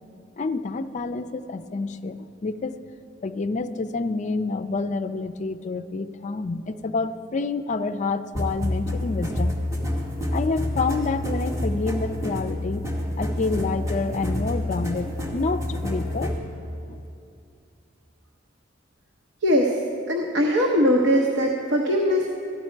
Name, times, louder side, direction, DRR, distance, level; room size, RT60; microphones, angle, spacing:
voice 1, 0.4-2.8 3.2-9.5 10.3-12.8 13.2-16.3, left 3 dB, 40° left, 10 dB, 0.4 m, -28 dB
sound 1, 8.3-16.4, left 1 dB, 15° right, 1.4 m, -28 dB
voice 2, 19.4-19.8 20.1-22.3, equal, 75° right, 0 dB, 0.9 m, -21 dB
13.5 x 10.5 x 4.5 m, 2.6 s
head